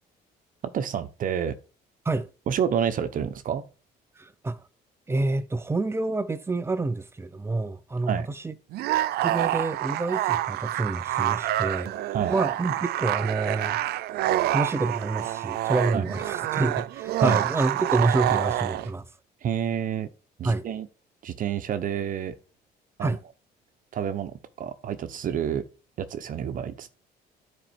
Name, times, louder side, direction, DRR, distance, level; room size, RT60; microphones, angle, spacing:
voice 1, 0.6-1.5 2.5-3.6 8.1-8.3 12.1-12.3 15.9-16.1 17.2-17.4 19.4-20.1 20.4-20.9 21.2-22.3 23.0-23.2 23.9-25.6 26.0-26.9, right 9 dB, 55° right, 1.0 m, -29 dB
voice 2, 4.2-4.6 5.1-8.5 9.2-12.0 12.3-14.0 14.5-19.1 20.4-20.7 23.0-23.2, right 3 dB, 15° right, 0.7 m, -28 dB
sound 1, 8.7-18.9, right 14 dB, 70° right, 0.5 m, -27 dB
9.9 x 4.3 x 4.4 m
cardioid pair, 110°, 17 cm